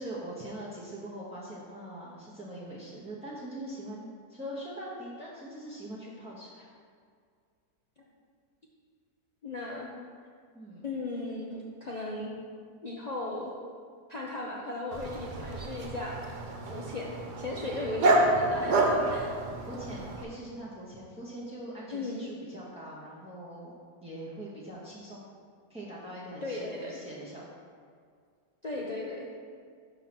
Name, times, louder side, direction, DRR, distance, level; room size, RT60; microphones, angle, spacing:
voice 1, 0.0-6.7 10.5-10.8 19.7-25.3 25.7-27.5, right 1 dB, 5° right, -8 dB, 0.6 m, -42 dB
voice 2, 9.4-9.9 10.8-12.3 12.8-13.5 14.1-16.2 16.7-19.4 21.9-22.3 26.4-27.0 28.6-29.3, left 2 dB, 75° left, -3 dB, 0.3 m, -36 dB
Dog, 14.9-20.2, right 2 dB, 80° right, 1.4 m, -29 dB
5.7 x 5.4 x 6.0 m, 2.1 s
omnidirectional pair, 1.7 m